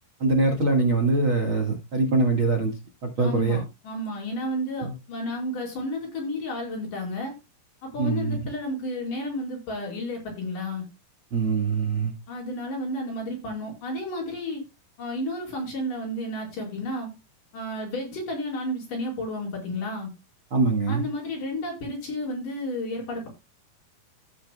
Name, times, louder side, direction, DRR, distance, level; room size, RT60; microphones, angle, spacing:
voice 1, 0.2-2.7 3.0-3.6 4.8-4.9 8.0-8.4 11.3-12.1 20.5-21.0, right 3 dB, 45° right, 1.9 m, -23 dB
voice 2, 3.2-7.3 7.8-10.8 12.3-14.6 15.0-17.1 17.5-20.1 20.9-23.3, left 1 dB, 55° left, 6.2 m, -32 dB
16.0 x 6.6 x 2.3 m
omnidirectional pair, 4.5 m